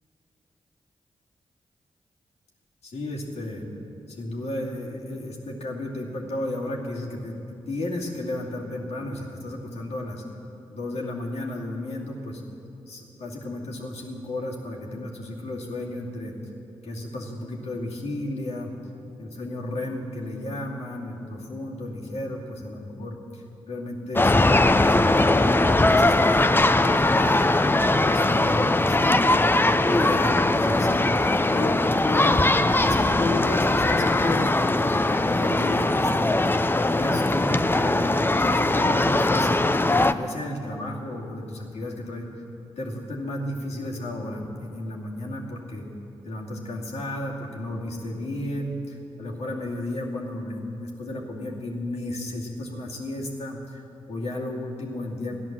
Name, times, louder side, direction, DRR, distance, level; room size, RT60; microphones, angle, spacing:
voice 1, 2.8-3.7 4.1-10.2 10.7-12.4 12.9-16.3 16.8-18.7 19.2-27.7 28.0-29.5 29.9-32.5 32.8-34.5 34.9-36.4 36.9-42.3 42.8-45.9 46.2-53.8 54.1-55.4, left 1 dB, 75° left, -3 dB, 2.6 m, -33 dB
sound 1, 24.2-40.1, left 2 dB, 20° left, 0.6 m, -20 dB
15.0 x 10.5 x 7.5 m, 2.8 s
supercardioid pair, 45°, 11 cm